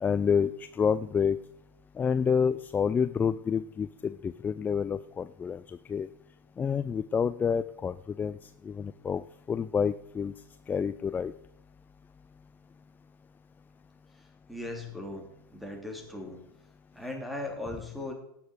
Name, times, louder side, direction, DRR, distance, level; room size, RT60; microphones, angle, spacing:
voice 1, 0.0-1.4 2.0-6.1 6.6-8.4 8.6-10.3 10.7-11.3, left 6 dB, 15° left, 15 dB, 0.4 m, -28 dB
voice 2, 14.5-15.2 15.5-16.4 16.9-18.1, left 2 dB, ahead, 2 dB, 3.3 m, -38 dB
18.0 x 7.1 x 4.7 m, 0.77 s
hypercardioid pair, 95°, 12 cm